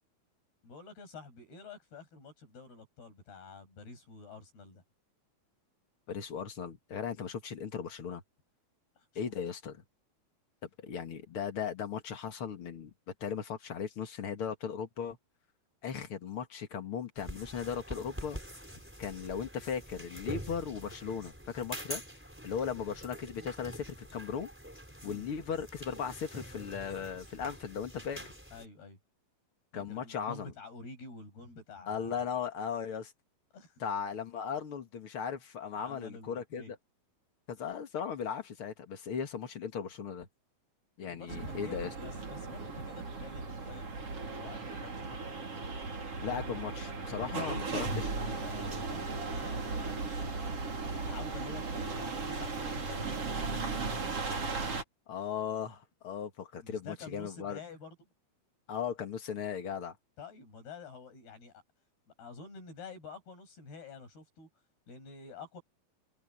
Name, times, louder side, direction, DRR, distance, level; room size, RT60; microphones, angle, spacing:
voice 1, 0.6-4.8 9.0-9.3 25.0-25.3 28.0-29.0 29.7-32.3 33.5-33.8 35.7-36.7 41.1-45.2 47.2-50.5 51.0-53.8 56.6-58.0 60.2-61.6 62.2-64.5 64.9-65.6, left 4 dB, 85° left, 10.0 m, -49 dB
voice 2, 6.1-8.2 9.2-9.8 10.8-12.9 13.2-15.2 15.8-18.4 19.0-22.0 22.4-24.5 25.0-28.2 29.7-30.5 31.9-33.1 33.8-36.8 37.5-40.3 41.0-41.9 46.2-47.9 55.1-57.6 58.7-60.0, left 7 dB, 45° left, 2.1 m, -37 dB
sound 1, 17.2-28.7, equal, 5° right, 4.3 m, -45 dB
sound 2, 41.3-54.8, right 3 dB, 40° right, 4.6 m, -36 dB
open air
omnidirectional pair, 4.4 m